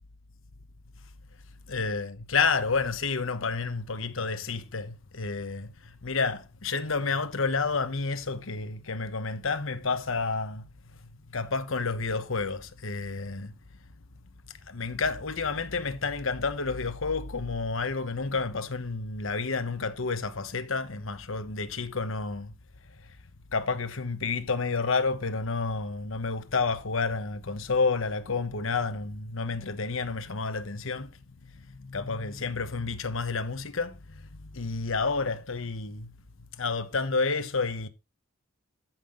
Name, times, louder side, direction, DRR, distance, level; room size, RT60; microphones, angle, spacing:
voice 1, 1.7-10.7 11.0-13.5 14.7-22.5 23.0-23.1 23.5-36.1 36.5-37.9, left 4 dB, 70° left, 1.1 m, -30 dB
13.5 x 5.8 x 3.8 m
head